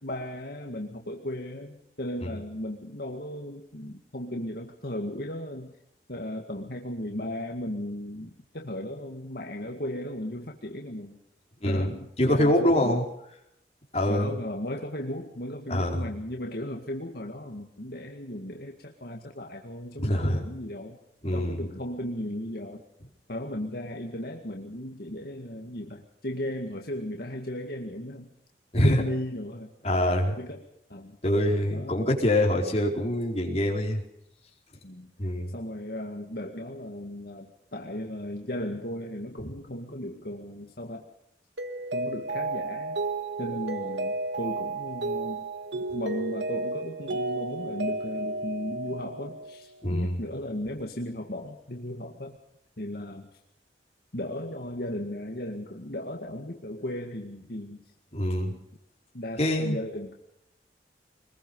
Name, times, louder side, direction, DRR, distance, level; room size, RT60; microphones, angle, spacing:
voice 1, 0.0-5.7 6.1-11.2 11.7-13.0 13.9-21.0 21.3-22.8 23.3-28.3 28.8-29.7 30.4-31.2 31.7-32.0 34.8-35.1 35.5-41.0 41.9-43.0 43.4-45.5 45.7-52.4 52.8-53.3 54.1-57.8 58.5-58.6 59.1-60.1, left 1 dB, 60° left, 2 dB, 2.1 m, -36 dB
voice 2, 12.2-13.0 13.9-14.3 15.7-16.0 20.0-20.4 21.2-21.6 28.7-29.0 29.8-30.4 31.2-34.0 35.2-35.5 49.8-50.2 58.1-58.5 59.4-59.8, left 1 dB, 35° left, 0 dB, 4.6 m, -24 dB
Mallet percussion, 41.6-49.7, right 2 dB, 85° right, 1.5 m, -32 dB
25.0 x 21.0 x 5.5 m, 0.76 s
head